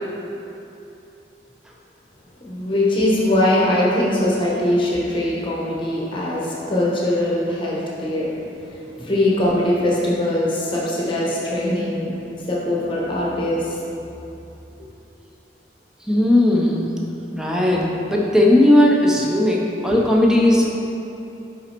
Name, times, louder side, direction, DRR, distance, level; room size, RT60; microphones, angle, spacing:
voice 1, 2.4-8.3 9.0-12.1 12.5-13.8, left 1 dB, 30° left, -5 dB, 0.9 m, -21 dB
voice 2, 16.1-16.9 17.3-20.7, left 1 dB, 5° right, -3 dB, 0.6 m, -17 dB
6.1 x 5.1 x 4.4 m, 2.9 s
head